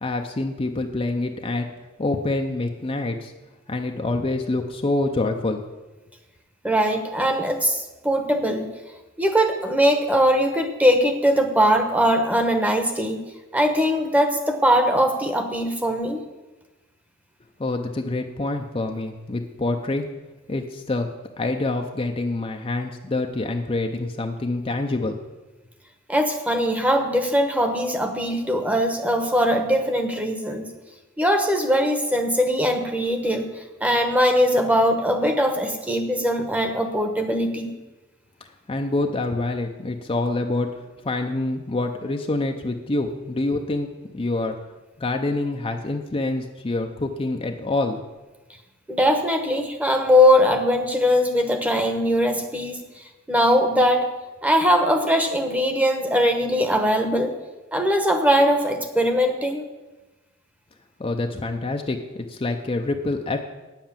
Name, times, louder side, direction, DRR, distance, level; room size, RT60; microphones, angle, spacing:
voice 1, 0.0-1.7 2.0-3.3 3.7-5.6 17.6-20.1 20.5-21.1 21.4-25.2 38.7-40.7 41.0-43.9 44.1-44.6 45.0-48.0 61.0-63.4, left 2 dB, 25° left, 4 dB, 0.6 m, -26 dB
voice 2, 6.6-8.7 9.2-13.2 13.5-16.2 26.1-30.7 31.2-37.7 48.9-54.1 54.4-57.3 57.7-59.6, equal, 5° right, 6 dB, 1.0 m, -21 dB
9.1 x 7.4 x 7.3 m, 1.1 s
head